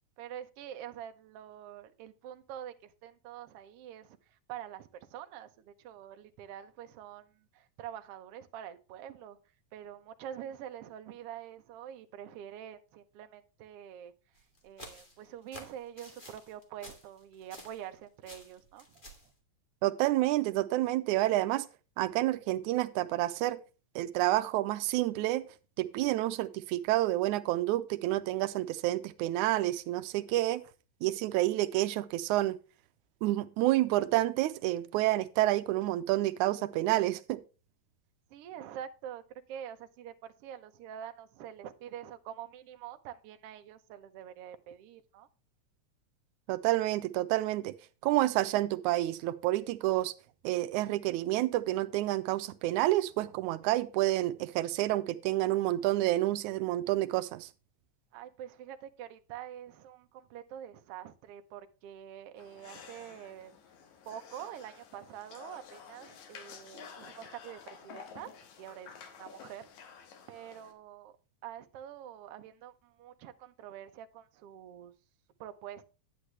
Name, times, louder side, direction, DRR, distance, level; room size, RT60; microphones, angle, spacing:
voice 1, 0.2-9.4 9.7-14.1 14.6-19.0 38.3-45.3 53.2-53.4 58.1-63.5 64.1-68.3 68.6-69.7 70.0-71.2 71.4-74.9 75.4-75.9, right 10 dB, 65° right, 1.6 m, -46 dB
sound 1, 14.3-17.9 18.2-19.3, left 1 dB, 20° left, 1.7 m, -51 dB
voice 2, 19.8-21.7 22.0-23.6 24.0-25.4 25.8-30.6 31.0-32.6 33.2-37.4 46.5-47.8 48.0-50.1 50.4-57.5, right 16 dB, 85° right, 2.0 m, -29 dB
sound 2, 62.4-70.7, left 6 dB, 75° left, 2.7 m, -51 dB
9.8 x 9.1 x 3.2 m
omnidirectional pair, 3.4 m